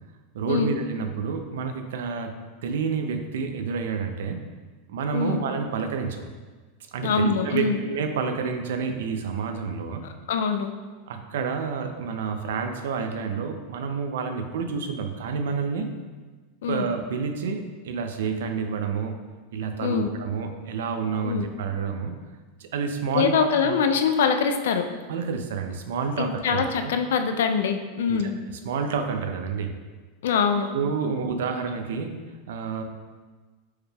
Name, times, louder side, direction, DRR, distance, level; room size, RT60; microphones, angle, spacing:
voice 1, 0.3-2.3 2.6-4.4 4.9-6.3 6.9-10.0 11.1-15.9 16.7-19.2 19.5-22.1 22.6-23.7 25.1-26.9 28.1-28.2 28.5-29.7 30.7-32.8, right 5 dB, 80° right, 6 dB, 0.4 m, -29 dB
voice 2, 7.0-7.8 10.3-10.7 16.6-16.9 19.8-20.1 21.2-21.4 23.1-24.8 26.2-28.3 30.2-30.7, left 6 dB, 85° left, 7 dB, 0.3 m, -24 dB
4.5 x 2.3 x 3.3 m, 1.3 s
supercardioid pair, 175°, 0 cm